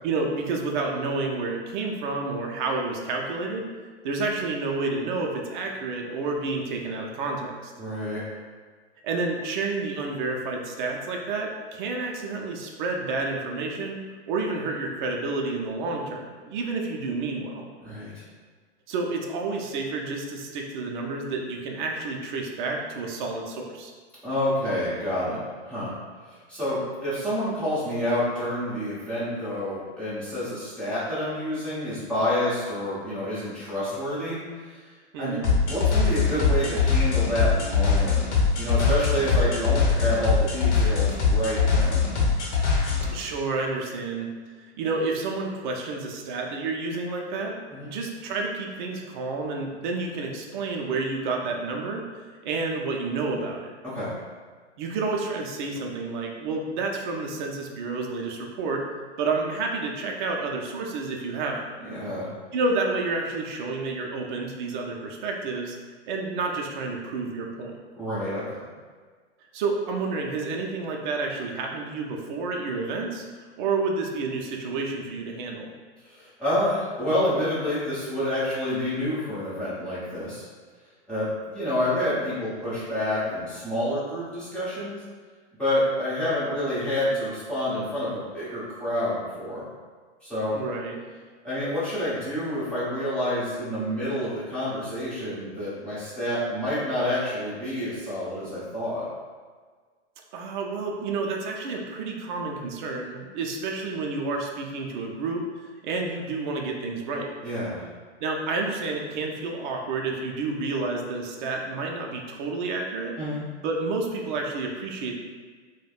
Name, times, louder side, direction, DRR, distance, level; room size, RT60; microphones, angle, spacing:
voice 1, 0.0-3.7 4.0-7.7 9.0-14.0 14.3-17.6 18.9-23.9 35.1-35.5 43.1-44.3 44.5-47.6 47.8-53.7 54.8-58.8 59.2-61.7 62.5-65.8 66.1-67.7 69.5-73.3 73.6-75.7 90.5-91.0 100.3-107.3 108.2-113.1 113.6-115.2, right 3 dB, 45° right, 0 dB, 0.4 m, -30 dB
voice 2, 7.8-8.2 17.8-18.2 24.2-25.4 25.7-25.9 26.5-34.8 35.2-35.4 35.7-38.2 38.6-42.1 47.7-47.9 53.8-54.1 61.8-62.3 67.9-68.6 76.0-80.4 81.1-85.0 85.6-89.6 90.2-90.6 91.4-99.1 107.4-107.8 113.2-113.4, left 1 dB, 5° left, -12 dB, 0.8 m, -28 dB
sound 1, 35.4-43.1, left 5 dB, 75° left, 0.9 m, -22 dB
3.3 x 2.1 x 2.3 m, 1.5 s
hypercardioid pair, 145°, 35 cm